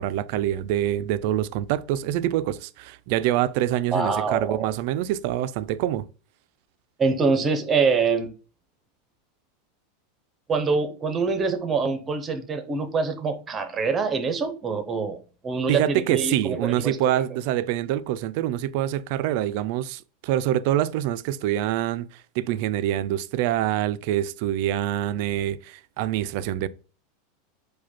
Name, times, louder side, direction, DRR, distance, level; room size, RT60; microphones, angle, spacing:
voice 1, 0.0-6.1 15.7-26.7, right 12 dB, 55° right, 0.3 m, -25 dB
voice 2, 3.9-4.7 7.0-8.3 10.5-15.2 15.4-17.0, right 4 dB, 20° right, 0.7 m, -25 dB
4.9 x 2.2 x 4.2 m
supercardioid pair, 145°, 0 cm